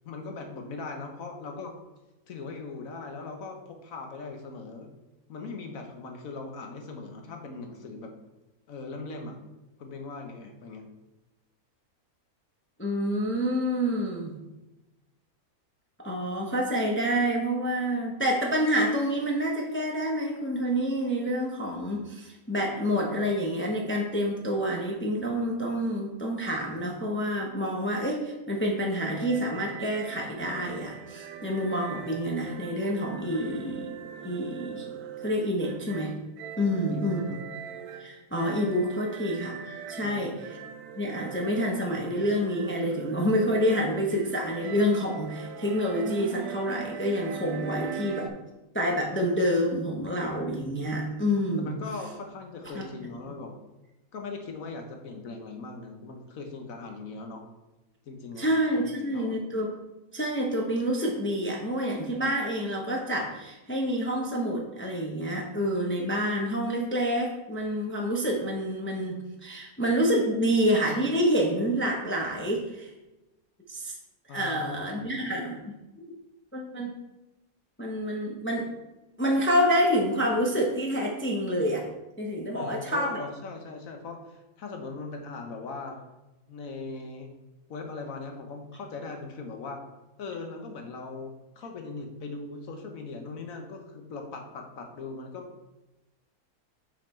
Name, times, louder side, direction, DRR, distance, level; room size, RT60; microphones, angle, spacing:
voice 1, 0.0-1.7 2.3-4.9 5.3-8.1 8.7-9.4 9.8-10.9 36.6-37.2 40.0-40.4 51.6-53.6 54.1-57.4 58.1-59.4 74.3-75.2 82.5-86.0 86.5-87.3 87.7-89.8 90.2-95.7, left 3 dB, 65° left, 4 dB, 1.2 m, -40 dB
voice 2, 12.8-14.3 16.0-33.9 34.2-34.9 35.2-36.1 36.6-37.4 38.0-40.3 41.0-48.3 48.7-51.8 52.7-52.8 58.4-59.7 60.1-72.9 73.7-73.9 74.3-75.6 76.5-76.9 77.8-78.7 79.2-81.8 82.2-83.2, equal, 10° left, -1 dB, 0.5 m, -28 dB
sound 1, 29.0-48.3, right 7 dB, 85° right, 1.1 m, -41 dB
5.7 x 5.0 x 4.3 m, 1.0 s
omnidirectional pair, 1.6 m